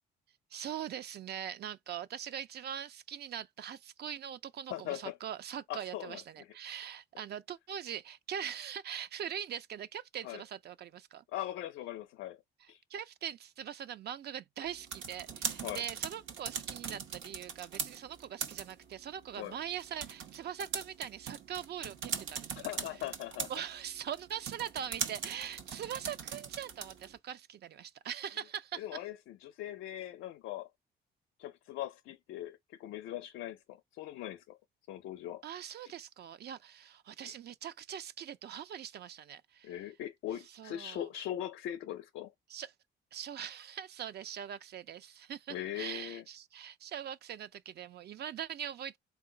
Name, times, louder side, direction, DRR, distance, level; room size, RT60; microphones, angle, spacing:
voice 1, 0.5-11.2 12.6-22.6 23.5-28.8 35.4-39.7 40.5-41.1 42.5-42.7 43.1-49.0, right 9 dB, 55° right, 0.4 m, -42 dB
voice 2, 4.7-5.2 5.7-6.5 10.2-10.4 11.3-12.4 12.7-12.8 15.6-15.8 19.4-19.5 22.6-23.5 28.8-30.7 31.4-34.6 34.9-35.4 37.2-37.3 39.6-42.3 45.5-46.2, left 12 dB, 90° left, 0.4 m, -40 dB
sound 1, 14.7-27.2, right 6 dB, 75° right, 0.9 m, -41 dB
3.8 x 2.4 x 3.7 m
cardioid pair, 90°, 20 cm